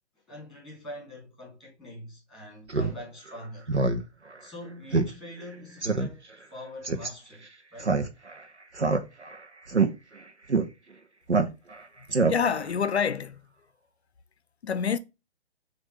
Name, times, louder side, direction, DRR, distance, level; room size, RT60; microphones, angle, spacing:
voice 1, 0.3-3.9 4.4-6.2 6.5-7.5 7.7-8.0, left 1 dB, ahead, 2.0 m, -43 dB
Speech synthesizer, 2.7-2.9 3.3-3.4 3.7-4.0 4.3-4.4 4.9-5.1 5.4-5.5 5.8-6.1 6.8-7.1 7.8-8.4 8.8-9.4 9.7-9.9 10.5-10.6 11.3-11.8 12.1-12.6, right 4 dB, 85° right, 0.9 m, -24 dB
voice 2, 12.3-13.4 14.6-15.0, left 6 dB, 70° left, 0.6 m, -26 dB
6.2 x 2.8 x 3.1 m
figure-of-eight pair, 135°, 33 cm